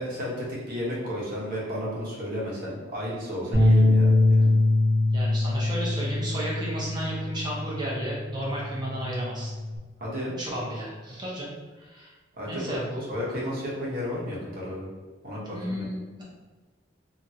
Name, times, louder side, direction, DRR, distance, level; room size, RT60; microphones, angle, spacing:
voice 1, 0.0-4.5 10.0-10.4 12.3-12.8 13.1-14.9 15.2-15.8, equal, 50° right, -6 dB, 1.0 m, -33 dB
sound 1, 3.5-9.8, left 2 dB, 45° left, 0.9 m, -23 dB
voice 2, 5.1-9.5 10.4-11.5 11.8-12.1 12.5-13.1 15.5-16.2, right 1 dB, 25° right, -5 dB, 0.9 m, -33 dB
2.9 x 2.6 x 2.7 m, 1.3 s
head